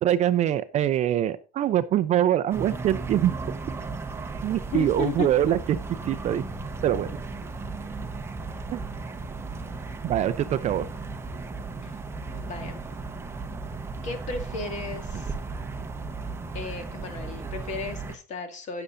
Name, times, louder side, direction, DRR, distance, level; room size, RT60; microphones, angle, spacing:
voice 1, 0.0-3.3 4.4-5.8 6.0-6.4 6.8-7.1 8.7-8.8 10.0-10.9, right 11 dB, 35° right, 13 dB, 0.5 m, -24 dB
sound 1, 2.5-18.2, right 3 dB, 10° right, 0.9 m, -35 dB
voice 2, 4.7-5.3 11.8-12.0 12.3-12.9 14.0-15.4 16.5-18.8, left 5 dB, 35° left, 6 dB, 2.0 m, -34 dB
16.5 x 6.9 x 2.6 m, 0.34 s
cardioid pair, 160°, 20 cm